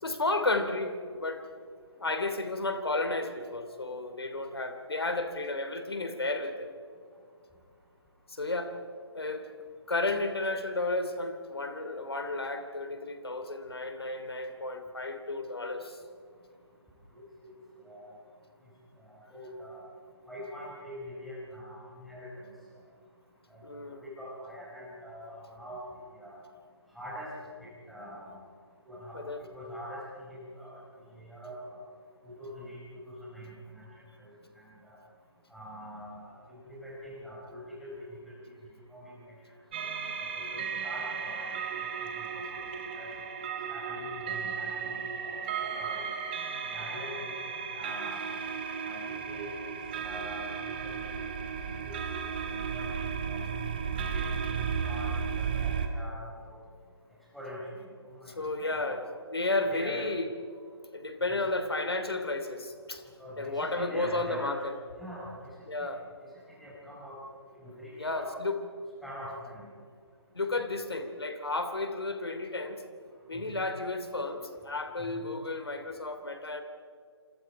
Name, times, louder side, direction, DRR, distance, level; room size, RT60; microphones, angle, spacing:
voice 1, 0.0-1.4 2.0-6.7 8.3-8.8 9.1-9.5 9.9-16.0 23.6-24.0 29.1-29.4 58.3-60.2 60.9-63.0 63.4-64.7 65.7-66.0 68.0-68.6 70.3-72.8 73.3-76.6, left 2 dB, 60° left, 8 dB, 3.1 m, -32 dB
voice 2, 19.1-19.8 20.3-22.5 23.5-23.6 24.0-25.8 26.2-26.4 26.9-27.3 27.9-28.3 28.8-30.8 31.1-31.8 32.2-33.8 34.2-35.0 35.5-37.9 38.2-38.5 38.9-39.2 40.4-41.9 42.1-42.6 42.9-43.1 43.7-46.0 46.6-48.3 48.8-49.7 50.0-50.5 50.8-51.3 51.6-51.9 52.5-53.5 54.1-56.5 57.3-58.9 59.7-60.0 61.2-61.4 63.2-64.6 64.9-65.4 65.8-65.9 66.2-67.2 67.5-68.3 69.0-69.7 73.3-73.5 75.1-75.2, equal, ahead, -7 dB, 5.1 m, -44 dB
sound 1, 39.7-55.9, right 6 dB, 20° right, 1.4 m, -35 dB
27.5 x 27.0 x 4.8 m, 2.2 s
figure-of-eight pair, 150°, 14 cm